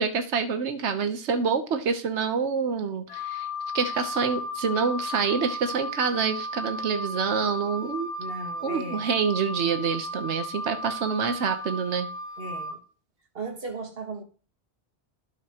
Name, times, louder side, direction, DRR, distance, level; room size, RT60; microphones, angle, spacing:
voice 1, 0.0-3.5 3.7-8.1 8.6-12.1, right 5 dB, 90° right, 1.2 m, -27 dB
Wind instrument woodwind instrument, 3.1-12.7, left 1 dB, 65° left, 2.0 m, -35 dB
voice 2, 8.2-9.1 12.4-12.8 13.3-14.2, right 3 dB, 60° right, 1.6 m, -36 dB
12.0 x 5.7 x 2.9 m
omnidirectional pair, 1.1 m